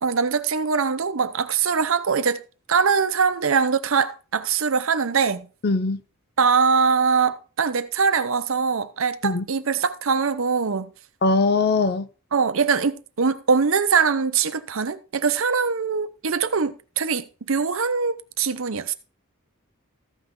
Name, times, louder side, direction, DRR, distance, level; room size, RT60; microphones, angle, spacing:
voice 1, 0.0-2.4 2.7-5.5 6.4-10.9 12.3-18.9, right 5 dB, 65° right, 0.7 m, -22 dB
voice 2, 5.6-6.0 9.2-9.4 11.2-12.1, left 3 dB, 45° left, 0.6 m, -21 dB
14.5 x 5.9 x 3.7 m
head